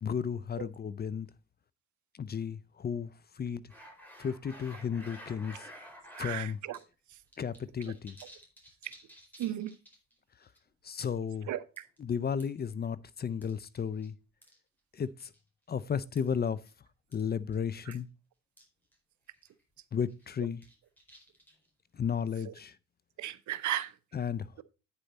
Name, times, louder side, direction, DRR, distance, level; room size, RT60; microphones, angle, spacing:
voice 1, 0.0-1.3 2.1-3.7 4.2-5.7 6.2-6.6 7.4-8.2 10.8-11.5 12.0-14.1 14.9-15.3 15.7-16.6 17.1-18.1 19.9-20.6 21.9-22.8 24.1-24.6, left 7 dB, 30° left, 0.5 m, -34 dB
sound 1, 3.7-6.4 6.7-6.8 7.1-10.1 10.4-10.6 11.0-11.3 11.8-12.6 13.4-14.1 14.4-14.6 15.2-15.4 16.2-16.3 16.7-16.8 17.1-17.3 17.5-17.6 17.9-18.0 18.6-18.7 18.9-19.0 19.4-19.6 20.1-21.7, equal, 5° left, 4.5 m, -52 dB
voice 2, 6.1-6.8 7.1-7.2 8.8-8.9 9.4-9.8 11.5-11.9 17.9-18.0 22.5-22.6 23.2-23.9, right 12 dB, 70° right, 0.8 m, -35 dB
9.1 x 6.9 x 4.1 m
cardioid pair, 90°, 30 cm